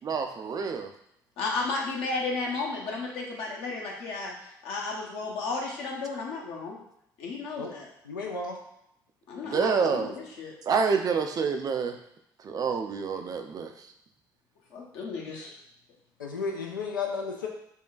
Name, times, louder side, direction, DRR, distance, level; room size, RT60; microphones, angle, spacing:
voice 1, 0.0-0.9 9.4-10.1 10.7-12.0 12.4-13.7, right 5 dB, 35° right, 5 dB, 0.4 m, -27 dB
voice 2, 1.4-4.3 4.6-6.8 7.2-7.9 9.3-10.5 14.7-15.5, left 3 dB, 60° left, -2 dB, 0.8 m, -33 dB
voice 3, 8.0-8.6 16.2-17.5, left 4 dB, 80° left, 1 dB, 0.4 m, -33 dB
5.3 x 2.2 x 2.4 m, 0.76 s
figure-of-eight pair, 50°, 11 cm